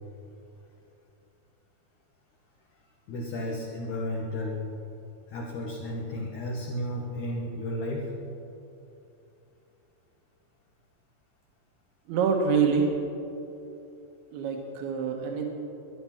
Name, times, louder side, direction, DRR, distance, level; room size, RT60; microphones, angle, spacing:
voice 1, 3.1-4.7 5.3-8.1, left 1 dB, 60° left, -2 dB, 2.6 m, -33 dB
voice 2, 12.1-12.9 14.3-15.5, right 5 dB, 80° right, 2 dB, 3.3 m, -25 dB
22.5 x 10.5 x 6.0 m, 2.8 s
omnidirectional pair, 4.5 m